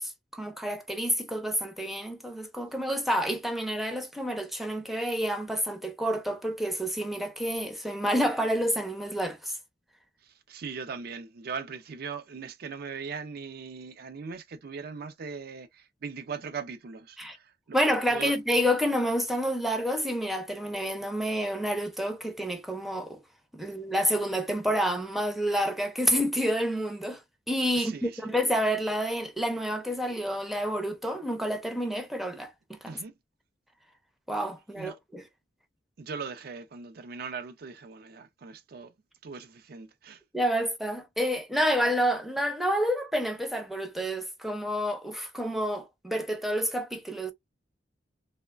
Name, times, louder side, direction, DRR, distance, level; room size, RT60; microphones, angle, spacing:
voice 1, 0.0-9.6 17.2-17.4 17.7-23.2 23.5-27.2 27.5-33.0 34.3-35.2 40.3-47.3, equal, ahead, 0.5 m, -29 dB
voice 2, 10.2-17.8 18.1-18.3 27.7-28.4 32.9-33.1 34.8-35.0 36.0-38.9 39.2-40.2, right 5 dB, 60° right, 0.4 m, -40 dB
3.1 x 2.1 x 2.2 m
head